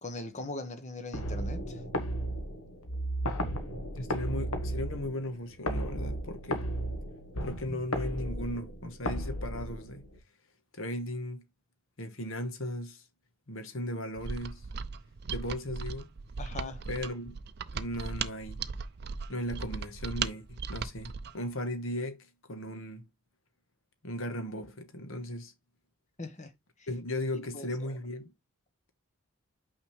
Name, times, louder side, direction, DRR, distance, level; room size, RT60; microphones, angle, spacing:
voice 1, 0.0-1.8 16.4-16.9 26.2-26.5 26.8-26.9 27.3-28.0, left 2 dB, 30° left, 1.1 m, -41 dB
sound 1, 1.1-10.2, equal, 85° left, 1.5 m, -35 dB
voice 2, 3.9-6.7 7.4-10.0 10.7-11.4 12.0-13.0 13.5-14.7 15.3-16.1 16.9-17.4 17.7-18.6 19.3-23.1 24.0-25.5 26.9-28.3, left 1 dB, 60° left, 1.3 m, -37 dB
Mechanisms, 14.2-21.4, right 5 dB, 50° right, 0.5 m, -37 dB
5.9 x 5.0 x 3.3 m
head